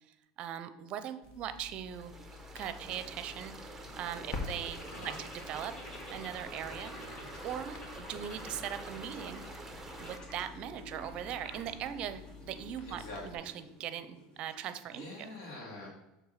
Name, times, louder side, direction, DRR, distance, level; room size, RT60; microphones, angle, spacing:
voice 1, 0.4-2.1 2.5-5.7 6.1-6.9 7.4-9.4 10.0-15.3, right 10 dB, 50° right, 11 dB, 0.6 m, -40 dB
sound 1, 1.2-13.3, left 4 dB, 55° left, 1.5 m, -48 dB
sound 2, 1.7-14.9, left 1 dB, 35° left, 1.8 m, -51 dB
sound 3, 1.9-10.2, right 3 dB, 10° right, 0.9 m, -48 dB
voice 2, 6.9-7.3 12.9-13.5 14.9-15.9, left 2 dB, 80° left, -4 dB, 2.1 m, -46 dB
6.7 x 3.4 x 5.7 m, 0.95 s
supercardioid pair, 105°, 2 cm